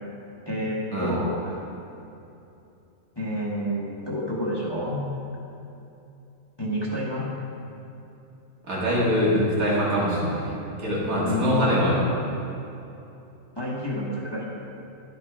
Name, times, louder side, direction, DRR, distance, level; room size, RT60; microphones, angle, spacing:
voice 1, 0.5-1.6 3.2-5.0 6.6-7.3 11.2-11.6 13.6-14.5, left 1 dB, 20° left, -7 dB, 1.1 m, -29 dB
voice 2, 8.7-12.0, equal, 85° right, -7 dB, 2.4 m, -23 dB
10.5 x 5.0 x 4.6 m, 2.8 s
omnidirectional pair, 1.4 m